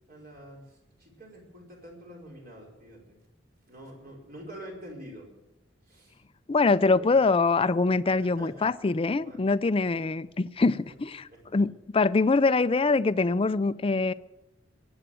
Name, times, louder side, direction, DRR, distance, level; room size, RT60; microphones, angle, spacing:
voice 1, 0.1-3.2 3.7-5.3 5.9-6.2 7.0-7.1 8.2-8.7 9.1-9.4 10.9-11.0 11.3-11.4, right 1 dB, 50° right, 4.9 m, -46 dB
voice 2, 6.5-14.1, left 3 dB, 30° left, 0.4 m, -24 dB
22.0 x 8.0 x 7.6 m
head